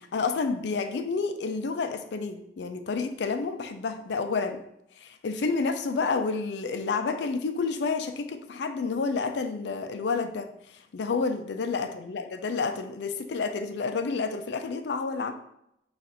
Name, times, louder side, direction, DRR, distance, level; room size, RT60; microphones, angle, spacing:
voice 1, 0.0-4.6 5.0-15.3, left 4 dB, 70° left, 8 dB, 0.4 m, -30 dB
3.9 x 2.5 x 4.1 m, 0.80 s
head